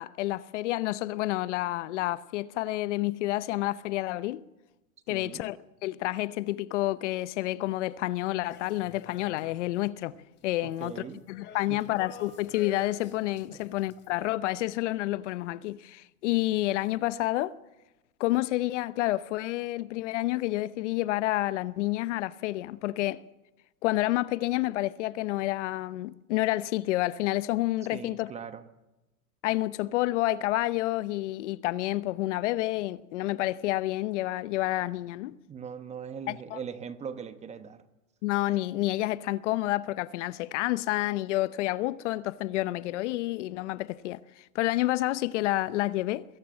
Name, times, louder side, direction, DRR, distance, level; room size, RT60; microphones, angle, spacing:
voice 1, 0.0-4.4 5.1-10.1 10.4-17.6 18.2-23.2 23.8-28.3 29.4-35.3 36.3-36.6 38.2-46.2, left 17 dB, 55° left, 0.8 m, -29 dB
voice 2, 5.1-5.5 10.6-11.2 11.7-11.8 13.5-13.6 27.9-28.6 35.5-37.8, right 7 dB, 15° right, 1.0 m, -40 dB
sound 1, 8.5-9.8 10.1-14.2, left 7 dB, 25° left, 3.0 m, -50 dB
21.5 x 17.0 x 7.6 m
supercardioid pair, 140°, 42 cm